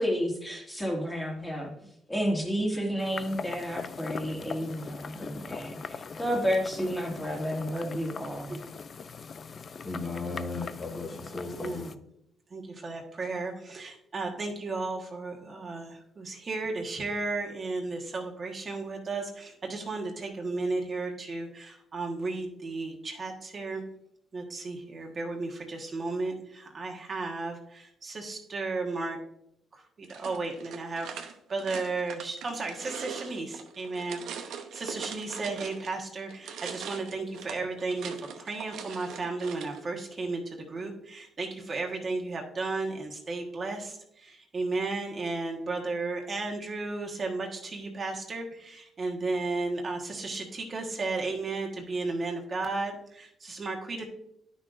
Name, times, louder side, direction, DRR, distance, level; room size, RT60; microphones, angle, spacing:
voice 1, 0.0-1.7 2.1-8.6, equal, 10° left, 0 dB, 2.1 m, -31 dB
sound 1, 3.0-11.9, left 5 dB, 45° left, 0.4 m, -41 dB
voice 2, 9.8-11.9, left 3 dB, 25° left, 1 dB, 2.3 m, -36 dB
voice 3, 11.1-11.9 12.5-23.8 24.3-29.2 29.7-54.0, right 3 dB, 40° right, 2 dB, 1.3 m, -34 dB
sound 2, 30.0-36.0 36.3-39.8, right 7 dB, 80° right, 0.8 m, -42 dB
10.0 x 6.3 x 2.5 m, 0.74 s
cardioid pair, 90°, 0 cm